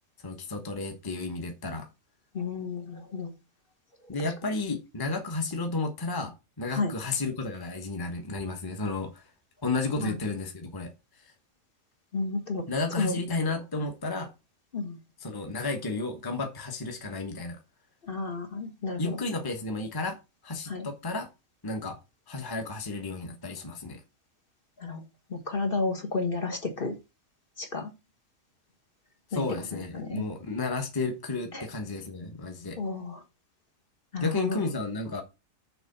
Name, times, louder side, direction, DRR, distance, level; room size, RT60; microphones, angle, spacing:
voice 1, 0.2-1.9 4.1-9.2 9.6-10.9 12.7-14.3 15.2-17.6 19.0-20.2 20.4-21.3 21.6-22.0 22.3-24.0 29.3-32.8 34.2-35.2, left 3 dB, 15° left, 1.2 m, -32 dB
voice 2, 2.3-3.3 6.7-6.9 10.0-10.1 12.1-12.6 13.0-13.2 14.7-15.0 18.1-19.2 20.7-20.9 24.8-25.0 25.3-26.9 27.6-27.9 29.3-29.4 29.9-30.2 31.5-31.6 32.8-33.2 34.1-34.6, left 3 dB, 40° left, 1.6 m, -31 dB
6.8 x 4.3 x 6.7 m
omnidirectional pair, 1.4 m